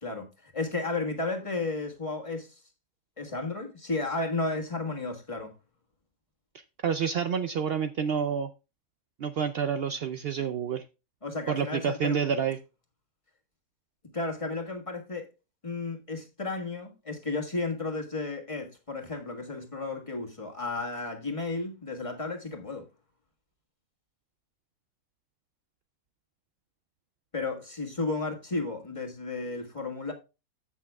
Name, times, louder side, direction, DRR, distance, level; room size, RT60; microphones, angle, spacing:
voice 1, 0.0-2.5 3.2-5.5 11.2-12.2 14.1-15.3 15.6-22.9 27.3-30.1, left 3 dB, 20° left, 1.5 m, -33 dB
voice 2, 6.8-8.5 9.2-10.8 11.5-12.6, right 7 dB, 85° right, 0.5 m, -28 dB
15.0 x 6.1 x 2.3 m
omnidirectional pair, 1.6 m